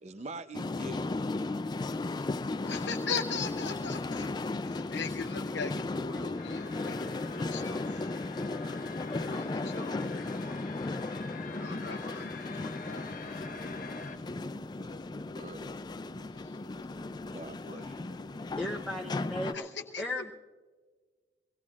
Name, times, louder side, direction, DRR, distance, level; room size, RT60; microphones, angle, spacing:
voice 1, 0.0-1.1 15.4-15.8 17.3-18.2, right 2 dB, 40° right, 11 dB, 0.5 m, -44 dB
sound 1, 0.5-19.5, left 2 dB, 25° left, 0.3 m, -36 dB
voice 2, 2.6-8.1 9.1-10.8 11.4-13.4 16.3-16.6 17.6-17.8 19.5-20.2, left 5 dB, 80° left, 2 dB, 0.7 m, -40 dB
sound 2, 6.4-14.2, left 4 dB, 45° left, 0.9 m, -46 dB
sound 3, 13.0-18.8, right 2 dB, 65° right, 2.5 m, -56 dB
voice 3, 18.6-19.7 20.0-20.3, left 1 dB, 5° left, -2 dB, 0.7 m, -35 dB
23.5 x 18.5 x 2.4 m, 1.4 s
head